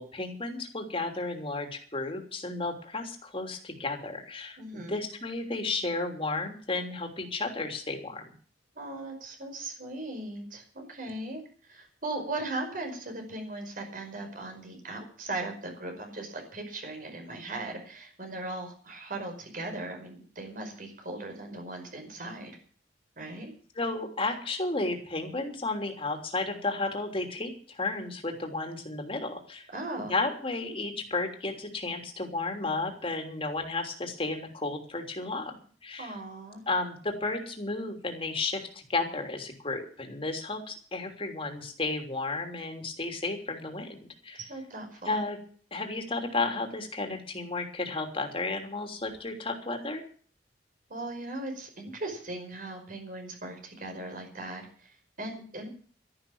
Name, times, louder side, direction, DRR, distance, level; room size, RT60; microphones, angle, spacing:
voice 1, 0.0-8.2 23.8-29.7 30.0-35.6 35.8-36.2 36.7-44.4 45.0-45.4 45.7-50.0, left 3 dB, 30° left, 4 dB, 3.2 m, -33 dB
voice 2, 4.6-5.0 8.8-11.4 11.7-22.5 23.2-23.5 29.7-30.2 36.0-36.6 44.3-45.2 50.9-55.7, right 2 dB, 50° right, 3 dB, 5.3 m, -38 dB
13.0 x 11.5 x 7.3 m, 0.44 s
head